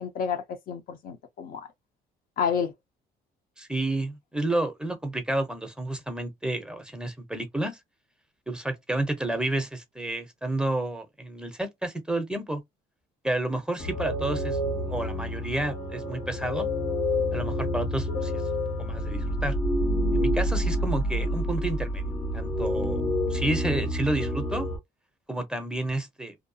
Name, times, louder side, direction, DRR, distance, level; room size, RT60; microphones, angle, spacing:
voice 1, 0.0-1.7 2.4-2.7, left 7 dB, 55° left, 0.6 m, -30 dB
voice 2, 3.6-7.8 8.5-12.6 13.2-16.7 17.3-19.6 20.1-22.0 22.3-23.0 23.3-24.7 25.3-26.4, right 1 dB, 5° right, 0.6 m, -30 dB
sound 1, 13.8-24.8, equal, 75° left, 1.3 m, -28 dB
2.7 x 2.2 x 2.6 m
cardioid pair, 110°, 17 cm